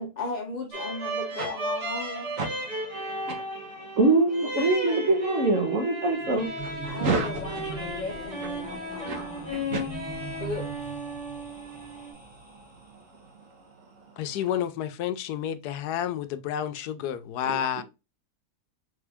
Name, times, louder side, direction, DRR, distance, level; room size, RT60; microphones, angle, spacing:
voice 1, 0.0-2.3 6.8-9.8 10.4-10.7, left 3 dB, 45° left, 0.6 m, -36 dB
sound 1, 0.7-12.1, equal, 90° right, 2.2 m, -35 dB
voice 2, 2.4-2.7 3.1-3.4 4.0-6.7 7.0-7.3 8.8-9.8, right 3 dB, 55° right, 1.4 m, -25 dB
sound 2, 6.1-13.1, right 4 dB, 10° right, 0.5 m, -41 dB
voice 3, 14.2-17.8, left 10 dB, 80° left, 1.1 m, -30 dB
3.6 x 3.6 x 3.4 m
omnidirectional pair, 1.7 m